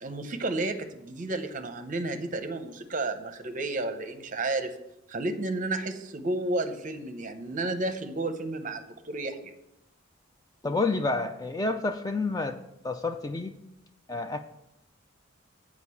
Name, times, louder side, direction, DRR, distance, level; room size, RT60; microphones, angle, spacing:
voice 1, 0.0-4.8 5.1-9.5, right 2 dB, 40° right, 8 dB, 0.7 m, -32 dB
voice 2, 10.6-12.6 12.8-13.5 14.1-14.4, left 3 dB, 15° left, 7 dB, 0.3 m, -29 dB
8.1 x 4.9 x 7.0 m, 0.86 s
head